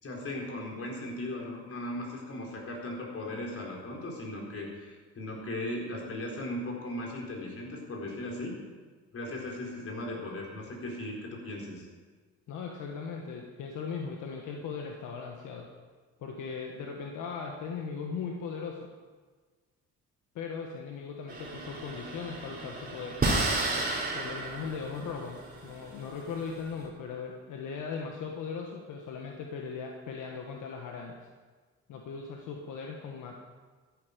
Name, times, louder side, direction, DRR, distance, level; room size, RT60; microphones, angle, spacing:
voice 1, 0.0-8.5 9.1-11.9, left 1 dB, 50° left, -1 dB, 4.4 m, -37 dB
voice 2, 12.5-15.7 16.2-18.9 20.3-23.2 24.1-31.2 31.9-33.4, left 5 dB, 85° left, 1 dB, 1.5 m, -38 dB
sound 1, 21.3-26.8, right 2 dB, 30° right, 3.1 m, -33 dB
13.0 x 11.0 x 5.2 m, 1.4 s
cardioid pair, 90°, 30 cm